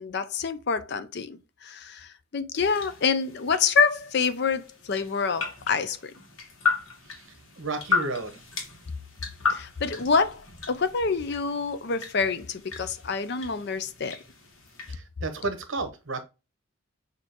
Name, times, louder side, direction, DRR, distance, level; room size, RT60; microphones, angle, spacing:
voice 1, 0.0-6.1 9.5-14.2, left 5 dB, 50° left, 0.5 m, -27 dB
sound 1, 2.6-14.9, left 5 dB, 80° left, 1.5 m, -35 dB
voice 2, 7.6-8.4 14.9-16.2, right 3 dB, 65° right, 1.0 m, -32 dB
6.3 x 2.8 x 2.8 m
head